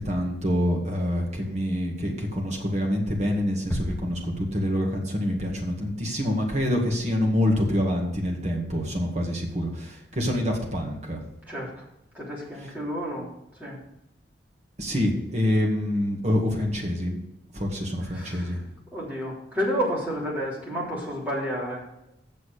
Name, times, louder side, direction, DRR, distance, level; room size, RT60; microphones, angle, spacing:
voice 1, 0.0-11.2 14.8-17.2 17.5-18.6, left 1 dB, 40° right, 1 dB, 2.0 m, -26 dB
sound 1, 3.7-5.1, equal, 10° left, 1.0 m, -34 dB
voice 2, 11.5-11.9 12.1-13.8 18.1-18.6 18.9-21.8, equal, 10° right, -6 dB, 3.6 m, -31 dB
8.5 x 6.9 x 6.8 m, 0.83 s
head